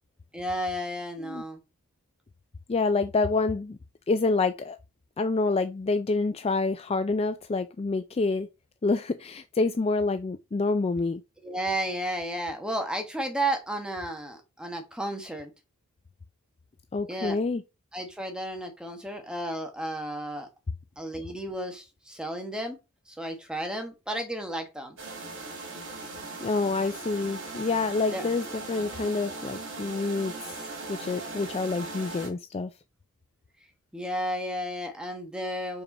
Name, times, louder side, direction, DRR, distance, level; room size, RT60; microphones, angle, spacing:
voice 1, 0.3-1.6 11.4-15.5 17.1-17.4 17.9-20.5 21.0-22.8 23.1-25.0 28.1-28.3 33.9-35.8, right 1 dB, 5° right, 1.3 m, -33 dB
voice 2, 2.7-3.8 4.1-4.8 5.2-8.5 8.8-11.2 16.9-17.6 26.4-30.5 30.9-32.7, left 3 dB, 25° left, 0.3 m, -27 dB
sound 1, 25.0-32.3, right 3 dB, 55° right, 2.4 m, -39 dB
5.3 x 4.4 x 5.4 m
head